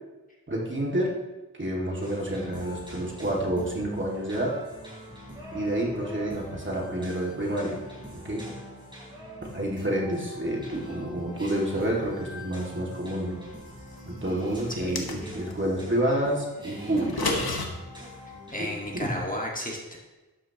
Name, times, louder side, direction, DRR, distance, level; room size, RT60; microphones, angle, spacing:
voice 1, 0.5-1.2 1.6-4.6 5.5-7.8 8.1-8.5 9.4-13.4 14.0-17.5 18.6-18.7 19.0-19.1, right 1 dB, 30° right, -2 dB, 2.2 m, -29 dB
sound 1, 2.0-19.2, equal, 10° right, 3.9 m, -44 dB
sound 2, 14.7-15.6 17.0-17.7, left 3 dB, 70° left, 1.5 m, -30 dB
voice 2, 18.5-20.0, left 1 dB, 20° left, -2 dB, 1.8 m, -33 dB
12.5 x 9.8 x 3.0 m, 1.1 s
wide cardioid pair, 105°, 38 cm